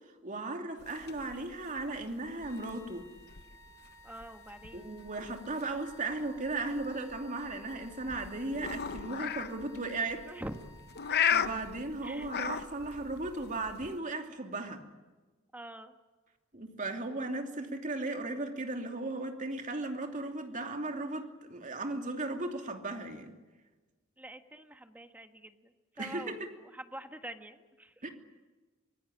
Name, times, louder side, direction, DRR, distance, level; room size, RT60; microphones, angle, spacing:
voice 1, 0.2-3.1 4.7-10.3 11.3-14.8 16.5-23.3 26.0-26.4 28.0-28.1, right 2 dB, 40° right, 4 dB, 2.8 m, -36 dB
sound 1, 0.8-14.0, left 8 dB, 50° left, 0.8 m, -37 dB
sound 2, 2.4-12.4, left 1 dB, 15° left, 4.4 m, -57 dB
voice 2, 4.0-4.9 10.3-10.6 11.1-11.2 12.0-12.3 15.5-15.9 24.2-28.0, right 1 dB, 10° right, 7 dB, 1.5 m, -46 dB
25.5 x 19.5 x 10.0 m, 1.2 s
head